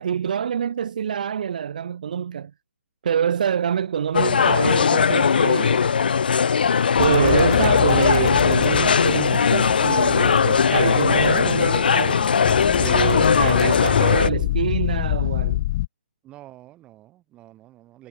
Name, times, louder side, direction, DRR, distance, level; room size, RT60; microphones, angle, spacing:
voice 1, 0.0-2.5 3.0-5.8 7.0-12.3 12.8-15.6, right 8 dB, 45° right, 0.9 m, -25 dB
sound 1, 4.1-14.3, left 6 dB, 55° left, 0.7 m, -19 dB
sound 2, 7.0-15.9, left 17 dB, 30° left, 1.2 m, -27 dB
voice 2, 16.2-18.1, right 15 dB, 15° right, 2.5 m, -48 dB
figure-of-eight pair, 135°, 6 cm